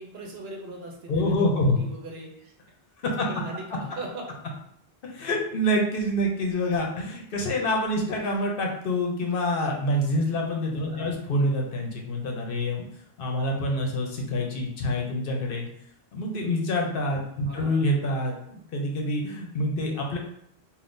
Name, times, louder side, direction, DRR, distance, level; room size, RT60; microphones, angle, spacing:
voice 1, 0.0-2.5 3.3-4.2 10.8-11.2 17.5-17.9, right 1 dB, 75° right, 0 dB, 1.0 m, -39 dB
voice 2, 1.1-1.9 3.0-3.3 5.0-12.9 13.2-15.7 16.1-20.2, left 1 dB, 65° left, 0 dB, 0.8 m, -26 dB
3.5 x 2.4 x 2.5 m, 0.71 s
omnidirectional pair, 1.0 m